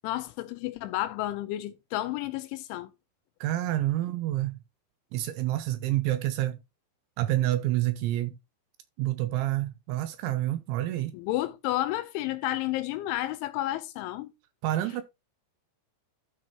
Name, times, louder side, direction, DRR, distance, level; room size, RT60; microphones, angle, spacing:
voice 1, 0.0-2.9 11.1-14.3, left 15 dB, 80° left, 2.9 m, -31 dB
voice 2, 3.4-4.5 5.1-6.6 7.2-8.4 9.0-11.1 14.6-15.0, right 14 dB, 85° right, 2.8 m, -28 dB
12.5 x 6.3 x 2.9 m
omnidirectional pair, 5.8 m